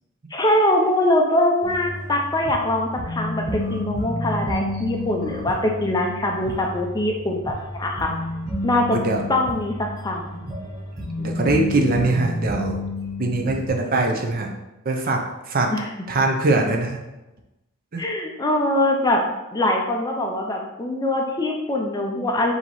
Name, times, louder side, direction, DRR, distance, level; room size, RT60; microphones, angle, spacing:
voice 1, 0.3-8.1 8.6-9.0 9.3-10.4 15.7-15.9 18.0-19.2 19.5-22.5, left 1 dB, 15° left, 1 dB, 0.4 m, -23 dB
sound 1, 1.6-13.7, left 1 dB, 15° right, 0.9 m, -31 dB
voice 2, 8.9-9.2 11.0-12.8 13.2-14.5 14.8-15.7 16.1-17.0 17.9-18.0, right 2 dB, 40° right, 2 dB, 0.5 m, -22 dB
4.9 x 2.8 x 3.0 m, 0.99 s
head